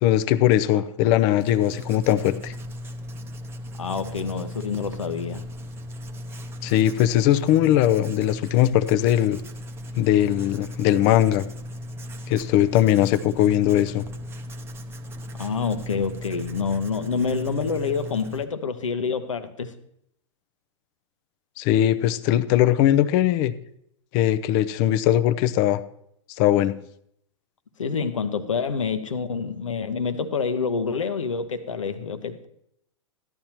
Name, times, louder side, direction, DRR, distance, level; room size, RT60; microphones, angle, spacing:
voice 1, 0.0-2.5 6.6-9.4 10.0-11.5 12.3-14.0 21.6-23.5 24.1-25.8 26.4-26.7, left 12 dB, 40° left, 0.6 m, -20 dB
Writing, 1.4-18.4, left 1 dB, 15° right, 0.7 m, -37 dB
voice 2, 3.8-5.4 15.3-19.7 27.8-32.5, left 5 dB, 85° left, 0.9 m, -27 dB
14.0 x 11.0 x 2.9 m
hypercardioid pair, 110°, 16 cm